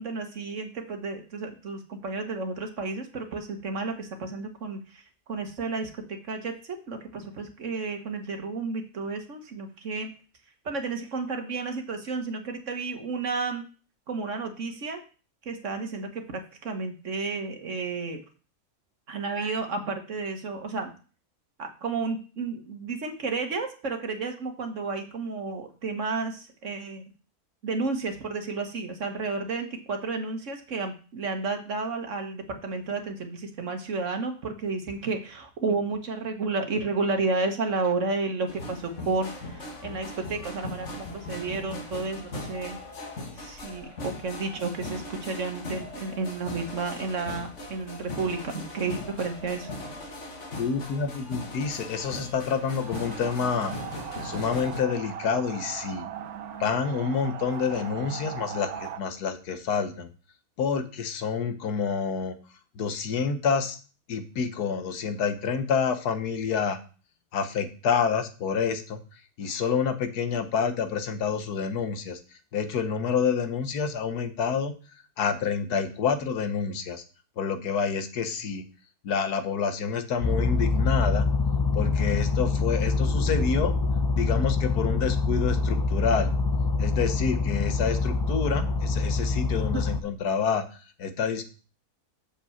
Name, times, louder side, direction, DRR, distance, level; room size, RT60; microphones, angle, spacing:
voice 1, 0.0-10.1 10.6-13.6 14.1-15.0 15.4-18.2 19.1-20.9 21.6-27.0 27.6-42.8 43.3-50.2, right 3 dB, 55° right, 5 dB, 1.5 m, -32 dB
sound 1, 38.5-54.8, left 2 dB, 50° left, 1.7 m, -39 dB
voice 2, 50.6-53.7 54.2-56.1 56.6-60.1 60.6-62.4 62.8-63.8 64.1-66.8 67.3-69.0 69.4-72.2 72.5-74.8 75.2-77.0 77.4-78.6 79.0-81.2 81.7-83.7 84.1-86.3 86.8-90.6 91.0-91.4, left 6 dB, 80° left, 9 dB, 1.6 m, -28 dB
sound 2, 52.4-59.0, right 9 dB, 75° right, 1.3 m, -39 dB
sound 3, 80.2-90.0, left 3 dB, 30° left, 0.4 m, -25 dB
6.8 x 5.5 x 7.1 m, 0.37 s
omnidirectional pair, 1.6 m